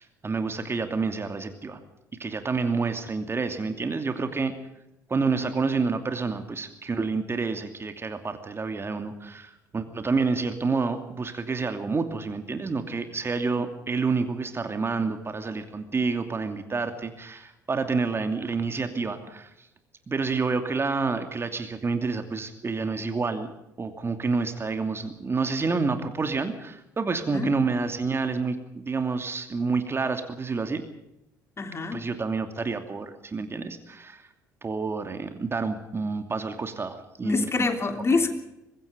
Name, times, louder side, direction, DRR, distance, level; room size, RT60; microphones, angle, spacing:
voice 1, 0.0-1.8 2.2-4.5 5.1-19.7 20.1-23.5 23.8-30.8 31.9-34.3 34.6-37.5, right 4 dB, 25° right, 7 dB, 2.7 m, -28 dB
voice 2, 31.6-32.0 37.2-38.3, left 3 dB, 30° left, 7 dB, 3.3 m, -25 dB
24.5 x 20.5 x 5.2 m, 0.87 s
figure-of-eight pair, 55°, 9 cm